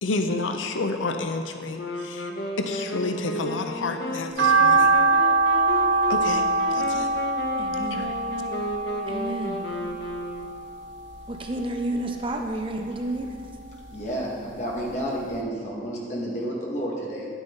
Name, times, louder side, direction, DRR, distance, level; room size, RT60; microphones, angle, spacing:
voice 1, 0.0-2.3 2.6-4.9 6.1-6.4 6.7-7.1 7.9-8.1, left 3 dB, 85° left, 6 dB, 0.6 m, -29 dB
Wind instrument woodwind instrument, 1.7-10.8, equal, 60° left, 1.0 m, -33 dB
sound 1, 4.4-10.7 11.0-12.2 12.5-14.0 14.3-14.4 14.9-15.0 15.2-15.3, right 3 dB, 75° right, 1.1 m, -23 dB
voice 2, 7.6-8.1 9.1-9.6 11.3-13.4, right 1 dB, 25° right, 3 dB, 0.6 m, -30 dB
voice 3, 13.9-17.3, equal, 40° left, -4 dB, 1.9 m, -30 dB
10.5 x 9.1 x 3.9 m, 2.2 s
head